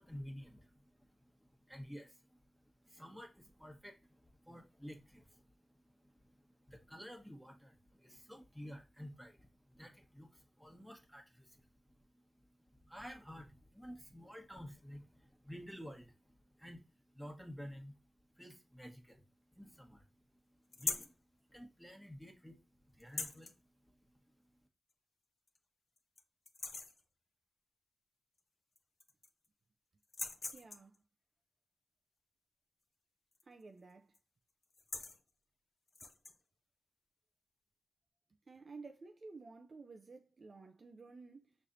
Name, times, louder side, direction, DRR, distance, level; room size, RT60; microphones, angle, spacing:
voice 1, 0.0-11.7 12.1-12.3 12.6-18.0 18.3-19.2 19.5-20.1 20.5-21.1 21.5-23.5 23.8-24.1, equal, ahead, 1.3 m, -52 dB
sound 1, 20.7-21.2 23.0-23.5 24.9-25.0 25.5-25.6 26.0-26.2 26.4-27.0 28.4-28.5 28.7-29.5 30.0-31.0 33.3-33.6 33.9-34.2 34.6-35.2 35.9-36.4, left 3 dB, 45° left, 0.6 m, -42 dB
voice 2, 30.5-31.0 33.4-34.2 38.5-41.6, right 4 dB, 50° right, 0.5 m, -53 dB
6.2 x 3.3 x 2.6 m
cardioid pair, 70°, 0 cm